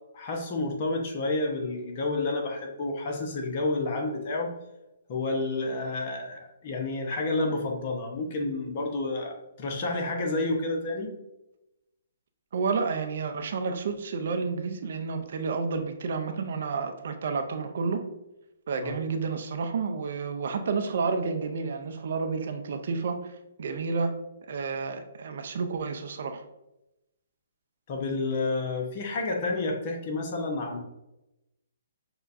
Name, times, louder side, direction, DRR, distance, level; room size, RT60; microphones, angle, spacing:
voice 1, 0.1-4.5 5.1-11.1 18.8-18.9 27.9-30.8, left 2 dB, 40° left, 2 dB, 0.8 m, -30 dB
voice 2, 12.5-18.1 18.7-23.3 23.6-24.2 24.5-26.4, right 4 dB, 55° right, 6 dB, 0.5 m, -30 dB
6.3 x 2.3 x 2.5 m, 0.92 s
figure-of-eight pair, 130°, 0 cm